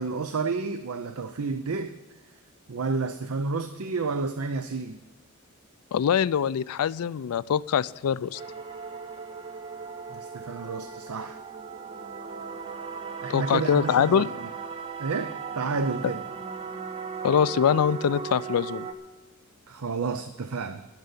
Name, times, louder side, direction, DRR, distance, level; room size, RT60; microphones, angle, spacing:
voice 1, 0.0-2.0 2.7-5.0 10.1-11.4 13.2-14.5 15.0-16.2 19.7-20.9, right 4 dB, 75° right, 0.6 m, -31 dB
voice 2, 5.9-8.4 13.3-14.3 17.2-18.9, left 8 dB, 85° left, 0.4 m, -23 dB
sound 1, 8.3-18.9, right 5 dB, 25° right, 0.8 m, -37 dB
12.0 x 6.7 x 9.7 m
head